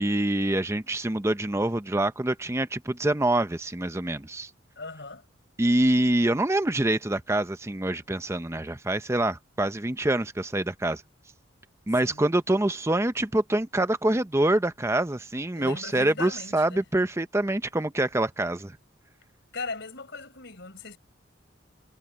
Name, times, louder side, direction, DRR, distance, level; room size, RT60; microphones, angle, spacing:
voice 1, 0.0-4.5 5.6-11.0 11.9-18.8, right 1 dB, 15° right, 0.6 m, -25 dB
voice 2, 4.8-5.2 12.0-12.2 15.5-16.8 19.5-21.0, left 3 dB, 60° left, 4.4 m, -38 dB
head